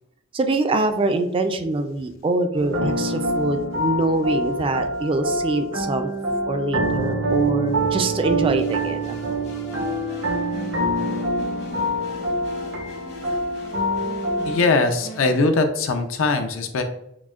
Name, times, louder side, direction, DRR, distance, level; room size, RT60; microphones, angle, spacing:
voice 1, 0.3-6.1 6.5-9.5, right 2 dB, 25° right, 7 dB, 0.3 m, -24 dB
sound 1, 2.5-14.6, right 1 dB, 80° right, 1.1 m, -25 dB
sound 2, 8.6-15.4, left 1 dB, 55° left, 1.1 m, -39 dB
voice 2, 14.4-16.8, left 3 dB, 75° left, 6 dB, 0.5 m, -21 dB
5.9 x 2.1 x 2.4 m, 0.79 s
head